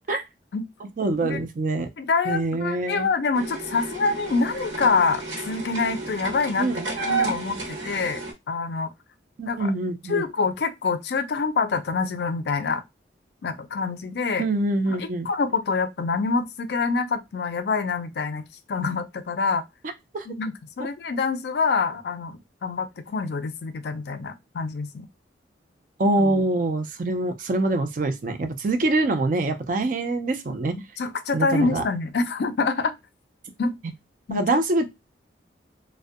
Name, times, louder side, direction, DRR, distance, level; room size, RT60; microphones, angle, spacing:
voice 1, 1.0-1.9 2.3-3.1 6.6-6.9 9.4-10.2 14.4-15.3 20.1-20.3 20.8-20.9 26.0-30.7 31.3-31.9 34.3-34.9, right 2 dB, 45° right, 0.4 m, -24 dB
voice 2, 2.0-6.7 7.1-8.2 8.5-8.9 9.4-9.7 10.1-12.8 13.4-14.5 14.9-19.6 20.3-25.1 30.7-32.9 33.6-33.7 34.3-34.6, left 4 dB, 60° left, 0.4 m, -26 dB
sound 1, 3.3-8.3, right 3 dB, 75° right, 1.1 m, -31 dB
2.4 x 2.1 x 2.5 m
head